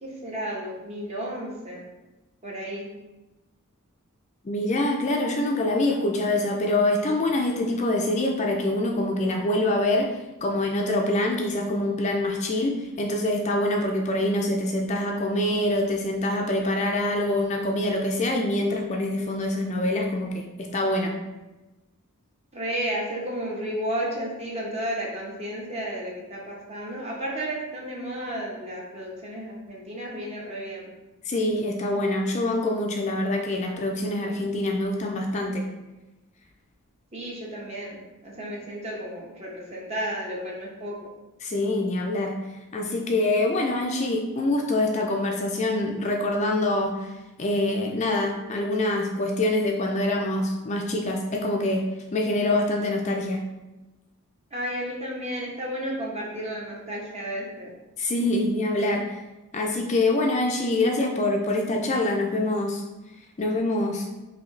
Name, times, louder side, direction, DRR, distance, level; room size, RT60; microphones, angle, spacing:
voice 1, 0.0-1.8 2.4-2.9 22.5-30.9 37.1-38.0 38.2-40.9 54.5-57.7, right 1 dB, 30° right, -3 dB, 1.0 m, -32 dB
voice 2, 4.4-21.2 31.2-35.7 41.4-42.4 42.7-47.1 47.4-51.8 52.1-53.5 58.0-59.2 59.5-62.8 63.4-64.1, left 1 dB, 30° left, 2 dB, 0.4 m, -25 dB
5.4 x 2.7 x 3.2 m, 1.1 s
head